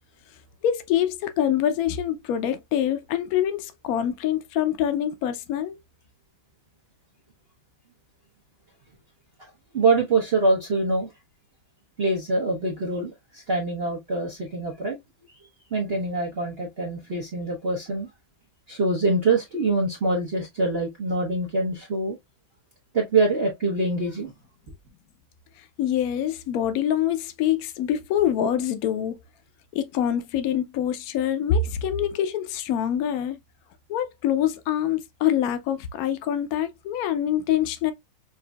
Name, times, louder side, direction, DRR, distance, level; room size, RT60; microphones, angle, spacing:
voice 1, 0.6-5.8 25.8-29.2 29.7-33.4 33.9-37.9, left 10 dB, 85° left, 0.8 m, -25 dB
voice 2, 9.4-11.1 12.0-15.0 15.7-18.1 18.7-22.2 22.9-24.3, right 3 dB, 45° right, 0.8 m, -24 dB
6.1 x 2.6 x 2.2 m
omnidirectional pair, 2.2 m